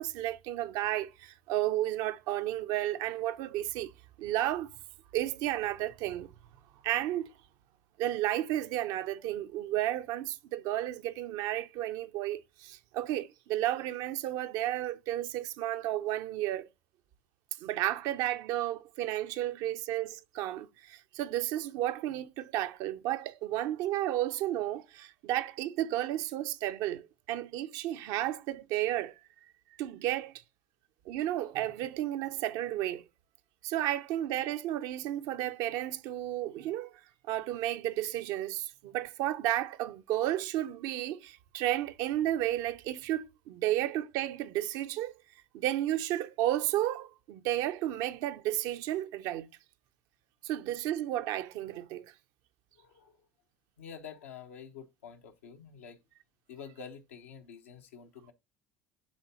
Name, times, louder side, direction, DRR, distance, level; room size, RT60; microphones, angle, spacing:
voice 1, 0.0-3.9 4.2-4.7 5.1-6.3 6.8-7.3 8.0-16.7 17.6-29.2 29.8-30.3 31.1-33.0 33.6-36.9 37.3-45.1 45.5-49.5 50.4-52.1, right 13 dB, 70° right, 0.7 m, -32 dB
voice 2, 52.7-53.3 53.8-56.0 56.5-58.3, left 7 dB, 90° left, 1.0 m, -48 dB
10.5 x 3.7 x 2.9 m
hypercardioid pair, 75°, 7 cm